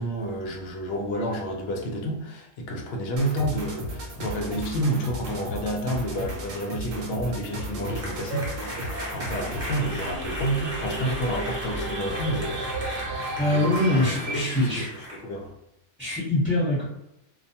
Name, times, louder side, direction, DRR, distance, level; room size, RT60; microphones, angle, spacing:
voice 1, 0.0-8.7 9.1-12.7 13.5-15.5, right 1 dB, 65° left, 1 dB, 0.7 m, -30 dB
sound 1, 3.2-10.0, equal, 60° right, 0.6 m, -35 dB
sound 2, 7.3-15.2, equal, 20° right, 0.4 m, -37 dB
sound 3, 9.3-14.9, right 1 dB, 75° right, 1.0 m, -33 dB
voice 2, 13.4-14.9 16.0-16.8, left 1 dB, 5° left, -10 dB, 0.9 m, -24 dB
2.2 x 2.2 x 2.7 m, 0.85 s
omnidirectional pair, 1.3 m